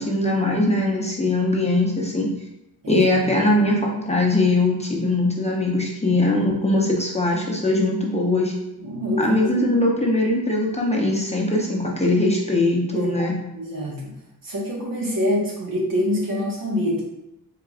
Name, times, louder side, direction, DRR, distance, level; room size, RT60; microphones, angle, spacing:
voice 1, 0.0-2.3 2.9-8.5 9.2-13.3, left 2 dB, 15° left, -2 dB, 0.7 m, -21 dB
voice 2, 2.8-3.3 8.8-9.7 12.9-13.1 13.5-14.1 14.4-17.0, left 1 dB, 60° right, -3 dB, 1.4 m, -25 dB
4.5 x 3.7 x 2.4 m, 0.89 s
wide cardioid pair, 115°, 38 cm